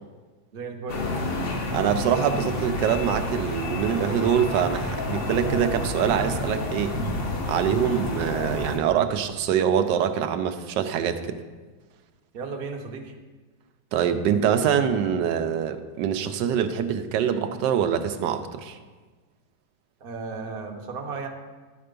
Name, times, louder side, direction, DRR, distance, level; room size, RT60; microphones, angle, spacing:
voice 1, 0.5-1.0 12.3-13.1 20.0-21.3, right 4 dB, 45° right, 3 dB, 0.8 m, -34 dB
sound 1, 0.9-8.8, left 2 dB, 45° left, 0.8 m, -29 dB
voice 2, 1.7-6.9 7.5-11.3 13.9-18.8, right 8 dB, 85° right, 8 dB, 1.2 m, -24 dB
11.0 x 4.4 x 5.2 m, 1.3 s
omnidirectional pair, 1.8 m